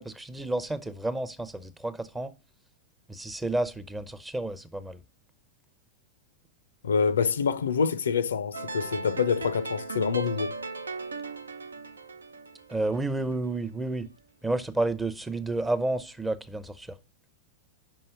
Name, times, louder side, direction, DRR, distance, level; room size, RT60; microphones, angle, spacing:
voice 1, 0.0-2.3 3.1-5.0 12.7-14.1 14.4-17.0, right 2 dB, 10° right, 0.6 m, -31 dB
voice 2, 6.8-10.6, left 6 dB, 70° left, 0.5 m, -26 dB
sound 1, 8.5-13.6, right 4 dB, 75° right, 0.5 m, -38 dB
5.4 x 5.4 x 5.5 m
figure-of-eight pair, 95°, 0 cm